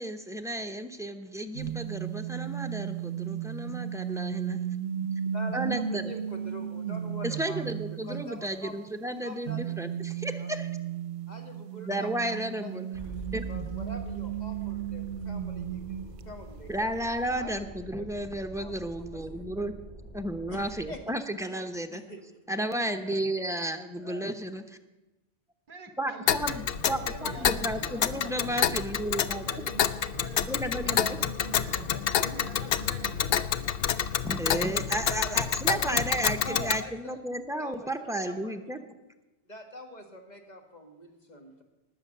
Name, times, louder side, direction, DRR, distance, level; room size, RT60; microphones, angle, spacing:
voice 1, 0.0-4.6 5.5-6.0 7.2-10.7 11.9-12.9 13.3-13.4 16.7-19.7 20.1-22.0 22.5-24.6 26.0-29.4 30.5-31.2 34.2-38.8, right 1 dB, 5° right, 6 dB, 0.8 m, -33 dB
sound 1, 1.5-8.7 9.4-16.6, right 9 dB, 70° right, 0.9 m, -35 dB
voice 2, 5.3-7.6 7.9-8.7 9.2-10.5 11.3-16.9 17.3-17.7 18.0-18.7 19.1-19.5 20.5-21.0 21.9-22.4 23.0-23.3 24.0-24.3 35.0-36.1 36.4-37.2 37.6-38.7 39.4-41.6, equal, 40° left, 3 dB, 2.0 m, -44 dB
sound 2, 12.9-20.9, right 2 dB, 80° left, 6.2 m, -44 dB
voice 3, 25.7-28.8 29.4-30.5 30.8-33.5, right 4 dB, 50° right, 9 dB, 1.1 m, -44 dB
Tick, 26.3-36.8, left 9 dB, 65° left, 0.8 m, -28 dB
19.0 x 7.7 x 6.7 m, 1.0 s
omnidirectional pair, 1.2 m